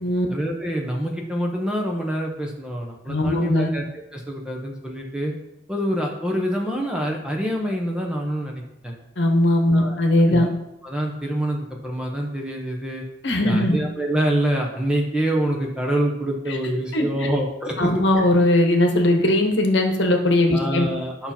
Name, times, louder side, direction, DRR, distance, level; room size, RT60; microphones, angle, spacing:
voice 1, 0.3-3.8 4.1-5.3 5.7-8.9 9.7-10.0 10.3-10.5 10.8-13.0 13.4-18.2 20.5-21.3, right 1 dB, 5° right, 0 dB, 1.1 m, -26 dB
voice 2, 3.1-3.7 9.2-10.5 13.2-13.8 16.5-16.6 16.9-17.3 17.8-20.9, left 1 dB, 65° left, 4 dB, 1.2 m, -19 dB
9.8 x 5.7 x 4.4 m, 0.90 s
head